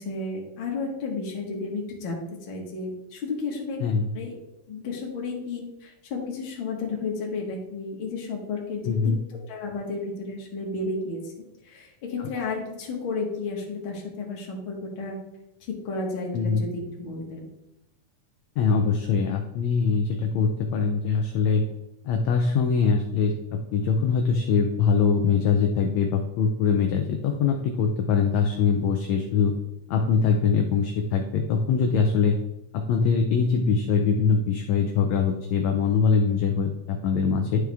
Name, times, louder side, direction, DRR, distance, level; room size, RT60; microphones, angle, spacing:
voice 1, 0.0-3.8 4.1-4.3 4.7-9.1 9.5-11.3 11.6-15.2 15.6-17.4, left 3 dB, 45° left, -2 dB, 2.0 m, -32 dB
voice 2, 8.8-9.2 16.3-16.6 18.6-21.6 22.1-29.6 29.9-32.4 32.7-37.6, left 5 dB, 75° left, 3 dB, 1.7 m, -23 dB
11.0 x 4.8 x 3.5 m, 0.88 s
omnidirectional pair, 3.6 m